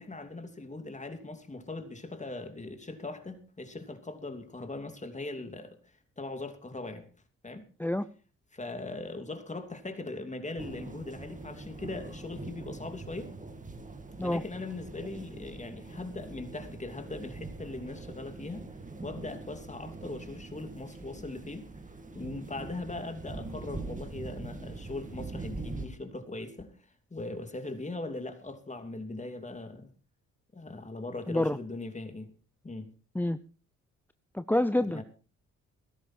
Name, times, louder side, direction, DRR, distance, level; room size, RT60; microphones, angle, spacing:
voice 1, 0.0-5.8 6.2-7.1 7.4-7.6 8.5-13.3 14.2-18.7 19.0-21.7 22.1-26.7 27.1-29.9 30.5-32.3 32.6-32.9 34.8-35.0, left 2 dB, 25° left, 2.9 m, -40 dB
sound 1, 10.6-25.9, right 3 dB, 25° right, 2.7 m, -43 dB
voice 2, 31.3-31.6 33.1-33.4 34.3-35.0, left 1 dB, 5° left, 0.6 m, -27 dB
16.0 x 13.5 x 4.5 m
cardioid pair, 75°, 31 cm